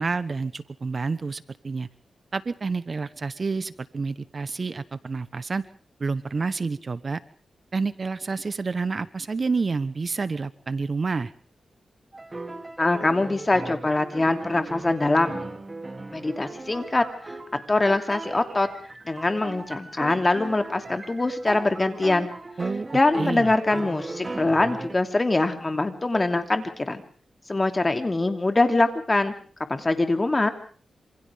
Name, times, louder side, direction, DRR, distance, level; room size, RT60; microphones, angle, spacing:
voice 1, 0.0-1.9 2.3-5.7 6.0-7.2 7.7-11.3 22.6-22.9 23.2-23.5, right 4 dB, 45° right, 15 dB, 1.0 m, -29 dB
sound 1, 12.1-25.0, right 2 dB, 25° right, 2.8 m, -37 dB
voice 2, 12.8-15.4 16.1-17.0 17.5-18.7 19.0-22.3 22.9-27.0 27.5-29.3 29.7-30.5, left 2 dB, 25° left, 7 dB, 3.0 m, -23 dB
27.0 x 27.0 x 3.6 m, 0.41 s
wide cardioid pair, 85°, 0 cm